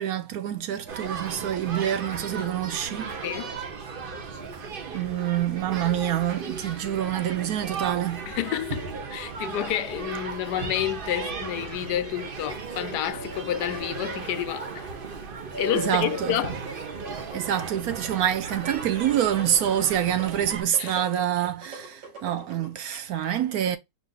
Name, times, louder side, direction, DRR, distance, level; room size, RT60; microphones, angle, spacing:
voice 1, 0.0-3.1 4.9-8.2 15.7-16.4 17.3-23.8, right 10 dB, 70° right, 1.0 m, -26 dB
sound 1, 0.9-20.6, right 4 dB, 45° right, 0.8 m, -36 dB
voice 2, 3.2-3.6 8.3-14.9 15.6-16.6 20.8-21.0, left 12 dB, 75° left, 1.1 m, -30 dB
sound 2, 16.9-22.9, right 3 dB, 85° right, 2.7 m, -44 dB
4.9 x 2.5 x 3.8 m
omnidirectional pair, 1.8 m